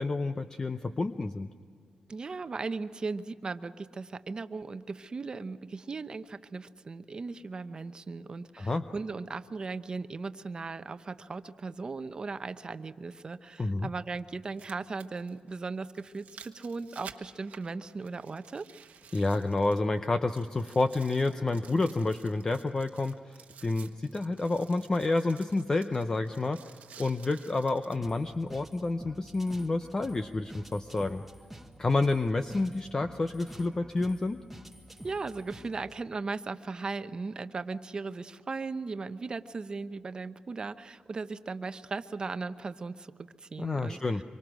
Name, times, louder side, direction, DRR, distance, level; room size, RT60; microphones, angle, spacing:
voice 1, 0.0-1.5 8.6-8.8 13.6-13.9 19.1-26.6 27.0-31.2 31.8-34.4 43.6-44.2, left 2 dB, 25° left, 8 dB, 0.7 m, -29 dB
voice 2, 2.1-18.7 35.0-44.0, right 4 dB, 35° right, 11 dB, 0.9 m, -37 dB
sound 1, 11.1-11.2 13.1-13.2 14.3-20.1 20.4-28.0 28.6-28.7, right 7 dB, 80° right, 1.3 m, -53 dB
sound 2, 28.0-36.0, right 1 dB, 5° right, 1.4 m, -49 dB
25.5 x 24.5 x 6.2 m, 2.1 s
wide cardioid pair, 125°, 3 cm